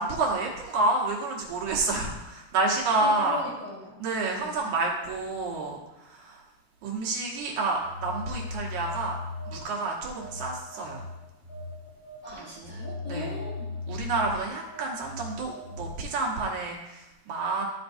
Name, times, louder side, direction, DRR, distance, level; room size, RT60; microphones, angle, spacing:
voice 1, 0.0-3.4 4.0-6.4 6.8-11.1 12.4-12.7 13.1-13.3 13.9-17.6, right 3 dB, 80° right, -2 dB, 2.7 m, -29 dB
voice 2, 3.0-4.0 4.3-4.6 12.2-13.8, left 2 dB, 40° left, -11 dB, 2.6 m, -39 dB
Telephone, 7.8-9.8 10.2-16.0, left 3 dB, 65° left, 1.6 m, -38 dB
13.5 x 4.6 x 2.6 m, 1.0 s
omnidirectional pair, 3.4 m